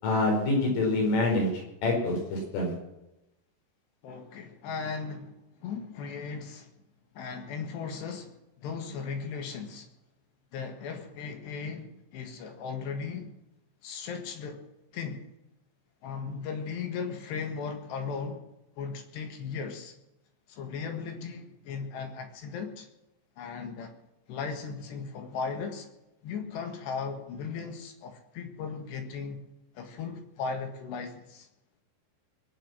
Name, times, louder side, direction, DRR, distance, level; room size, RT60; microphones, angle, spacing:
voice 1, 0.0-1.5 1.8-2.7, left 2 dB, 90° left, 0 dB, 7.5 m, -26 dB
voice 2, 4.0-5.4 5.6-6.7 7.2-9.9 10.5-13.3 13.8-14.6 14.9-15.3 16.0-18.4 18.8-19.9 20.5-22.9 23.4-24.0 24.3-25.9 26.2-29.4 29.8-31.5, left 5 dB, 65° left, 6 dB, 3.6 m, -37 dB
22.5 x 8.9 x 6.3 m, 0.90 s
omnidirectional pair, 5.6 m